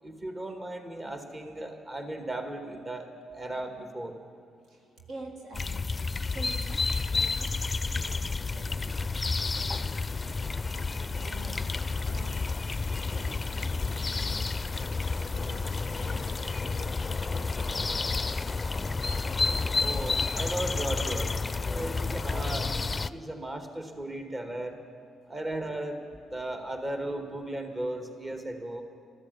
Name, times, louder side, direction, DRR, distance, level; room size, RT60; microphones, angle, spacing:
voice 1, 0.0-3.1 3.3-4.1 19.8-21.3 21.6-24.8 25.3-26.0 26.3-28.8, right 1 dB, 30° right, 5 dB, 2.0 m, -36 dB
voice 2, 5.1-5.8 6.3-6.9 7.1-7.5 7.8-9.8 10.7-11.8 12.0-12.3 13.1-13.7 14.0-14.5 15.3-18.3, right 2 dB, 65° right, 1 dB, 1.7 m, -47 dB
sound 1, 5.5-23.1, left 4 dB, 30° left, 0.5 m, -30 dB
13.0 x 13.0 x 8.3 m, 2.3 s
hypercardioid pair, 45°, 0 cm